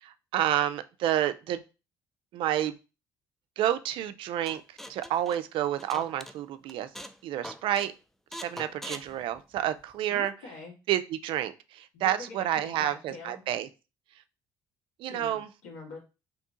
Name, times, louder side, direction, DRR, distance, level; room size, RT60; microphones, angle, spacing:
voice 1, 0.0-1.6 2.3-2.8 3.6-4.6 4.9-6.9 7.2-7.9 8.4-10.3 10.9-13.7 15.0-15.5, right 12 dB, 70° right, 0.4 m, -29 dB
sound 1, 4.5-6.4 6.7-7.2 7.4-7.9 8.3-9.9, equal, 5° left, 0.3 m, -42 dB
voice 2, 10.1-10.8 11.9-13.4 15.1-16.0, left 3 dB, 85° left, 1.5 m, -45 dB
2.8 x 2.7 x 3.6 m
supercardioid pair, 80°, 9 cm